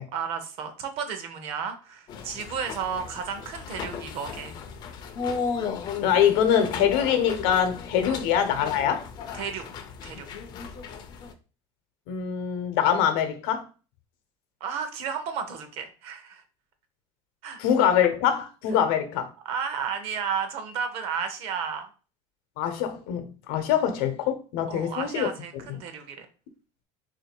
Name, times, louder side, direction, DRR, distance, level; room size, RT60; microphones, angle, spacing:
voice 1, 0.1-4.5 8.1-8.2 9.3-9.6 10.0-10.3 14.6-16.4 17.4-17.6 19.4-21.9 24.7-26.3, right 6 dB, 50° right, 0.7 m, -33 dB
sound 1, 2.1-11.3, left 5 dB, 35° left, 0.4 m, -36 dB
voice 2, 6.0-9.0 10.5-10.6 12.1-13.6 17.6-19.3 22.6-25.3, left 9 dB, 85° left, 0.8 m, -24 dB
3.1 x 2.7 x 4.3 m
cardioid pair, 175°, 13 cm